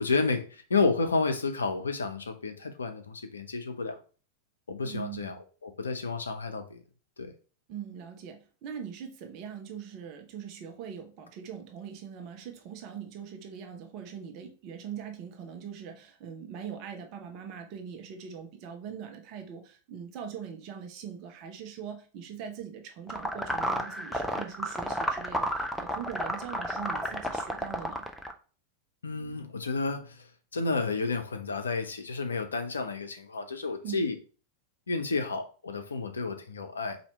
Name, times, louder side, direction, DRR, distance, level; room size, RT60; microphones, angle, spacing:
voice 1, 0.0-4.0 4.7-6.8 7.2-7.3 29.0-34.2 34.9-37.0, left 4 dB, 75° left, 7 dB, 0.6 m, -31 dB
voice 2, 4.8-5.3 7.7-28.0 33.8-34.1, right 8 dB, 40° right, 4 dB, 0.8 m, -42 dB
sound 1, 23.1-28.3, equal, 5° left, 0.6 m, -31 dB
4.2 x 2.8 x 4.3 m, 0.38 s
figure-of-eight pair, 90°, 0 cm